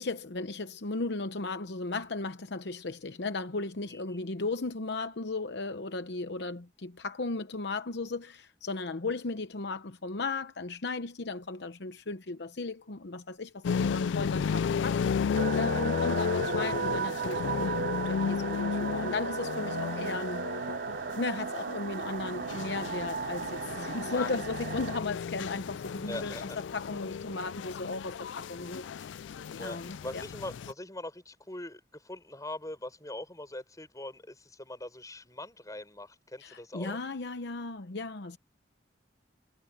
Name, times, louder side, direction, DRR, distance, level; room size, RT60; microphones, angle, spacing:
voice 1, 0.0-15.2 15.6-20.5 21.2-29.2 29.6-30.2 36.4-38.4, left 3 dB, 65° left, 0.9 m, -36 dB
voice 2, 3.9-4.2 24.1-24.3 26.1-26.6 29.5-37.0, left 1 dB, 20° left, 6.8 m, -42 dB
sound 1, 13.6-30.7, left 6 dB, 80° left, 0.4 m, -33 dB
sound 2, 15.3-25.0, right 6 dB, 55° right, 0.5 m, -35 dB
head